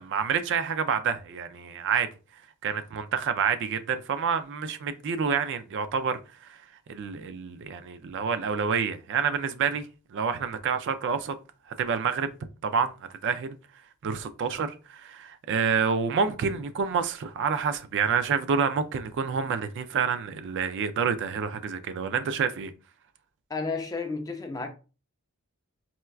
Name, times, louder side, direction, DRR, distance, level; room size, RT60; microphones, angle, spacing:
voice 1, 0.0-2.1 2.6-6.6 6.9-9.8 10.1-11.4 11.8-12.3 12.6-12.9 13.2-13.6 14.0-22.7, right 6 dB, 55° right, 0.3 m, -28 dB
voice 2, 23.5-24.7, left 4 dB, 15° left, 0.4 m, -32 dB
4.2 x 2.2 x 2.3 m
head